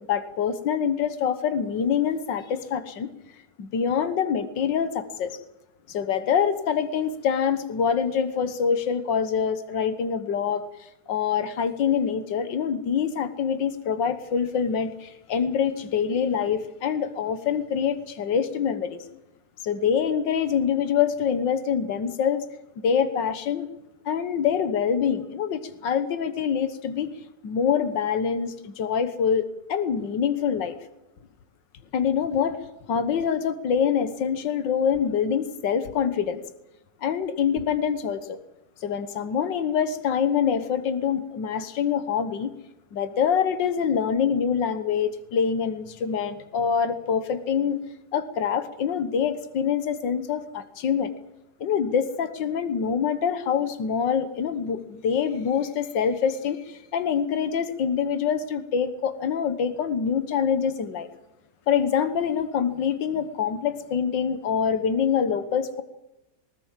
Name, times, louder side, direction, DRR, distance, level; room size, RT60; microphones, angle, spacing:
voice 1, 0.1-3.1 3.6-5.4 5.9-19.0 19.6-22.5 22.8-23.7 24.1-27.1 27.4-30.8 31.9-32.6 32.9-36.4 37.0-38.4 38.8-42.5 42.9-47.8 48.1-51.1 51.6-61.1 61.7-65.8, left 7 dB, 85° left, 11 dB, 1.9 m, -25 dB
20.0 x 18.5 x 7.5 m, 0.93 s
omnidirectional pair, 1.9 m